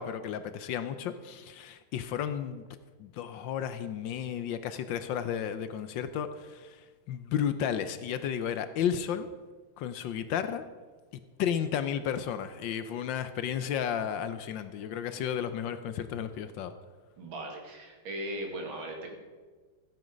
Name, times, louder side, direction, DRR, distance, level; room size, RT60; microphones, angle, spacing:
voice 1, 0.0-2.6 3.0-9.3 9.8-10.7 11.1-16.7, left 8 dB, 70° left, 1.3 m, -33 dB
voice 2, 17.2-19.1, right 1 dB, 75° right, 2.8 m, -38 dB
14.5 x 9.2 x 5.2 m
omnidirectional pair, 2.3 m